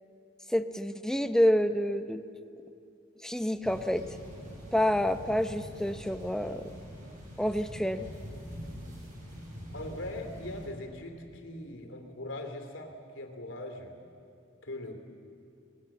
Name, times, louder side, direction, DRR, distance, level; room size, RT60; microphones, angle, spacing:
voice 1, 0.5-2.2 3.2-4.0 4.7-6.7 7.4-8.1, equal, 5° left, 9 dB, 0.8 m, -28 dB
sound 1, 3.6-10.7, equal, 45° right, 6.8 m, -44 dB
voice 2, 9.7-14.0 14.6-15.0, left 1 dB, 85° left, 5 dB, 2.9 m, -40 dB
25.5 x 20.5 x 7.2 m, 2.6 s
head